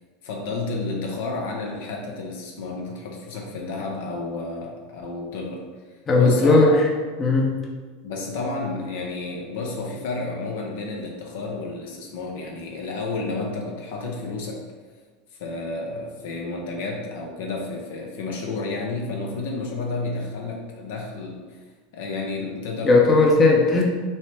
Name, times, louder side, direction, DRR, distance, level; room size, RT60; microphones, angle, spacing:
voice 1, 0.2-5.6 6.2-6.7 8.0-14.6 15.4-21.6 21.9-23.3, left 3 dB, 75° left, 0 dB, 0.7 m, -31 dB
voice 2, 6.1-6.9 7.2-7.6 22.8-24.0, left 3 dB, 30° left, 0 dB, 0.7 m, -17 dB
5.4 x 2.2 x 3.3 m, 1.4 s
hypercardioid pair, 100°, 0 cm